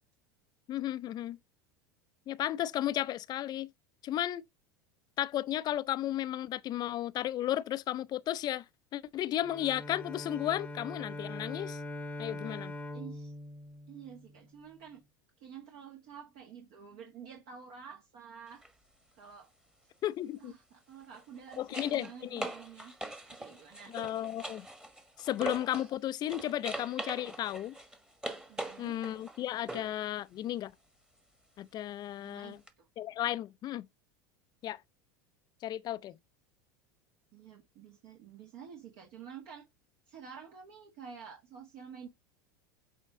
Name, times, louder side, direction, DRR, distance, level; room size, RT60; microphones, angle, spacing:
voice 1, 0.7-1.4 2.3-3.7 4.0-4.4 5.2-8.6 8.9-11.8 12.2-12.7 20.0-20.5 21.6-22.5 23.9-24.7 25.2-27.8 28.8-30.7 31.6-32.6 33.0-33.9 34.6-34.8 35.6-36.2, left 12 dB, 40° left, 0.5 m, -34 dB
Bowed string instrument, 9.4-14.7, left 1 dB, 10° left, 0.9 m, -42 dB
voice 2, 12.9-13.3 13.9-15.0 15.4-18.6 19.1-19.5 20.4-22.9 23.2-24.0 28.5-29.0 32.2-32.9 37.3-39.6 40.1-42.1, right 7 dB, 60° right, 1.8 m, -49 dB
sound 1, 18.5-18.7 21.0-25.9 26.3-30.0 32.7-32.8, right 1 dB, 5° right, 1.3 m, -42 dB
8.3 x 3.5 x 3.7 m
hypercardioid pair, 90°, 11 cm